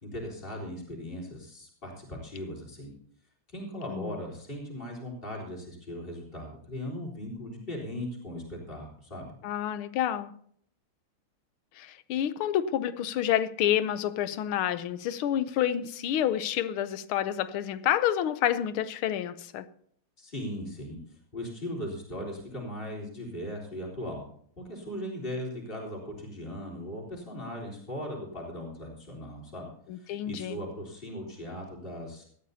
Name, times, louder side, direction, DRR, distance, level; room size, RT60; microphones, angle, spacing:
voice 1, 0.0-2.9 3.5-9.3 20.2-24.2 24.6-29.7 29.9-32.2, equal, 25° left, -2 dB, 3.9 m, -38 dB
voice 2, 9.4-10.3 11.8-19.6 29.9-30.6, left 11 dB, 85° left, 14 dB, 1.6 m, -29 dB
18.0 x 13.5 x 2.8 m, 0.62 s
omnidirectional pair, 2.3 m